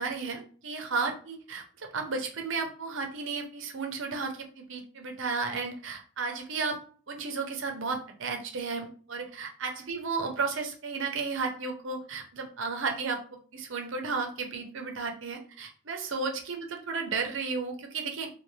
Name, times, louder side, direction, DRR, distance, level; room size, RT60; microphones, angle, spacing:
voice 1, 0.0-6.8 7.1-18.3, right 4 dB, 60° right, 3 dB, 0.6 m, -33 dB
2.5 x 2.3 x 3.0 m, 0.42 s
head